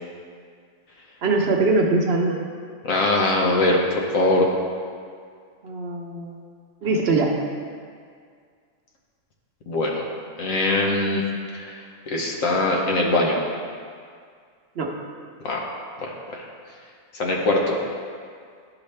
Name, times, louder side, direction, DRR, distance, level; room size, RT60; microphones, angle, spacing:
voice 1, 1.2-2.4 5.6-6.4 6.8-7.4 14.8-14.9, right 3 dB, 55° right, 1 dB, 0.9 m, -22 dB
voice 2, 2.8-4.5 9.7-10.1 10.4-11.2 11.5-13.4 15.4-15.7 16.0-16.5 17.1-17.8, left 2 dB, 75° left, -1 dB, 1.3 m, -22 dB
11.5 x 4.9 x 3.2 m, 2.1 s
omnidirectional pair, 1.4 m